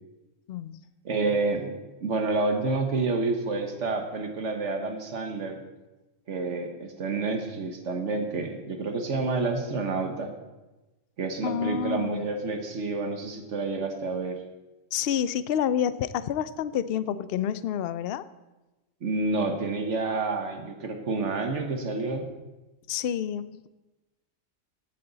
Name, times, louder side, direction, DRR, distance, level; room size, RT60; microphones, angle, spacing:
voice 1, 0.5-0.8 11.4-12.2 14.9-18.2 22.9-23.7, left 9 dB, 60° left, 15 dB, 0.6 m, -28 dB
voice 2, 1.0-1.7 2.0-5.6 6.3-10.3 11.2-14.4 19.0-22.3, right 3 dB, 65° right, 5 dB, 1.4 m, -29 dB
15.0 x 8.8 x 4.0 m, 1.1 s
omnidirectional pair, 1.4 m